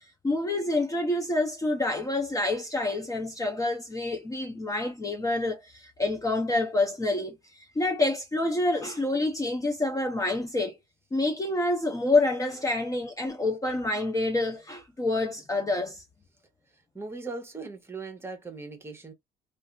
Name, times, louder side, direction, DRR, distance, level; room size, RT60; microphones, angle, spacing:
voice 1, 0.2-10.8 11.1-16.0, left 2 dB, 20° left, 0.7 m, -27 dB
voice 2, 16.9-19.1, right 3 dB, 15° right, 1.1 m, -39 dB
2.6 x 2.5 x 2.4 m
cardioid pair, 110°, 17 cm